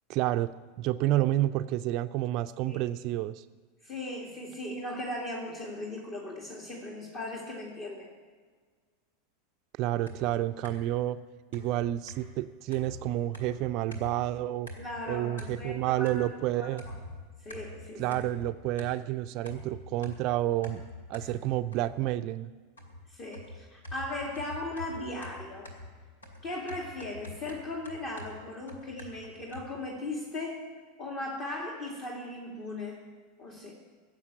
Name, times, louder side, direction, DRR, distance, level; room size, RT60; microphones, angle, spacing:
voice 1, 0.1-0.5 0.8-3.4 9.8-11.2 11.5-14.7 15.1-16.8 17.9-20.8 21.1-22.5, right 14 dB, 45° right, 10 dB, 0.4 m, -29 dB
voice 2, 3.8-8.1 14.8-16.9 17.4-18.2 23.1-25.7 26.4-30.6 31.0-33.0 33.4-33.7, left 2 dB, 40° left, -1 dB, 2.4 m, -38 dB
sound 1, 10.1-11.0 11.5-14.3 14.7-15.1 15.4-16.5 16.8-19.1 19.5-22.2 22.8-29.7, left 1 dB, 80° left, 2.4 m, -45 dB
15.5 x 7.3 x 8.8 m, 1.5 s
figure-of-eight pair, 85°, 0 cm